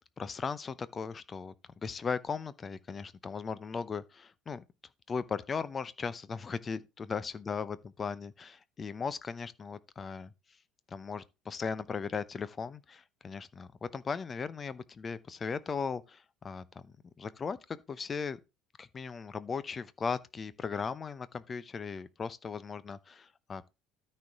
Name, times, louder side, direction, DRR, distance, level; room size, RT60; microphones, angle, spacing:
voice 1, 0.2-1.5 1.8-4.6 5.1-10.3 10.9-18.4 18.8-23.7, left 5 dB, 30° left, 0.7 m, -37 dB
13.0 x 4.5 x 3.6 m
figure-of-eight pair, 60°, 0 cm